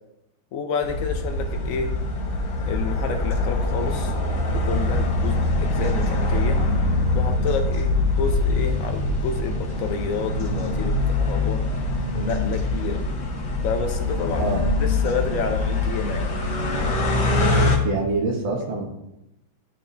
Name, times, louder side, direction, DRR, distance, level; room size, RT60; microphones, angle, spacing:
voice 1, 0.5-1.9 2.7-4.1 4.5-6.6 7.1-11.6 12.1-13.0 13.5-16.4, left 5 dB, 75° left, 5 dB, 0.7 m, -29 dB
sound 1, 0.8-17.8, left 2 dB, 40° left, 1.2 m, -23 dB
voice 2, 17.8-18.8, right 3 dB, 80° right, 0 dB, 1.7 m, -25 dB
11.5 x 4.3 x 2.6 m, 0.87 s
omnidirectional pair, 2.1 m